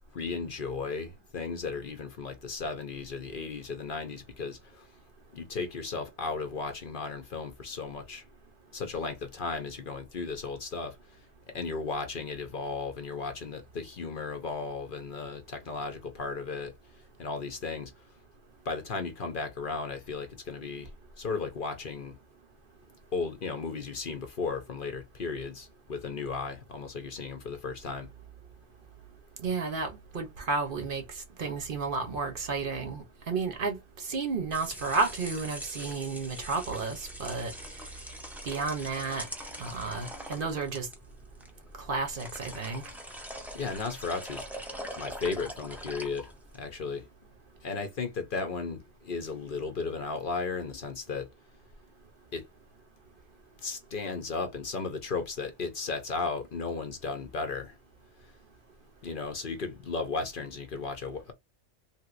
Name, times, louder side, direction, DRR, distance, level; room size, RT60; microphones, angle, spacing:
voice 1, 0.1-4.9 5.3-8.2 8.7-11.3 11.5-16.7 17.2-18.0 18.6-20.9 21.2-22.2 23.1-28.1 43.5-44.4 44.7-47.1 47.6-51.3 52.3-52.4 53.6-57.7 59.0-61.3, left 4 dB, 55° left, 0.8 m, -35 dB
voice 2, 29.4-31.0 31.4-37.5 38.5-39.3 39.6-40.9 41.8-42.8, right 4 dB, 55° right, 0.8 m, -32 dB
sound 1, 34.3-46.6, equal, ahead, 0.5 m, -43 dB
3.3 x 2.8 x 2.5 m
omnidirectional pair, 1.2 m